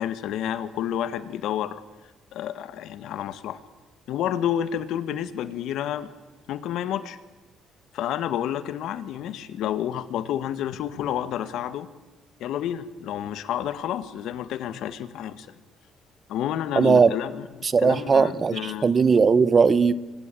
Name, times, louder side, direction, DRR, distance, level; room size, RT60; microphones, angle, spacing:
voice 1, 0.0-1.8 2.3-3.6 4.1-6.1 6.5-7.2 7.9-11.9 12.4-15.6 16.3-18.9, left 10 dB, 75° left, 1.8 m, -30 dB
voice 2, 16.8-17.1 17.7-19.9, right 5 dB, 30° right, 0.9 m, -18 dB
25.5 x 25.0 x 8.6 m
cardioid pair, 140°, 0 cm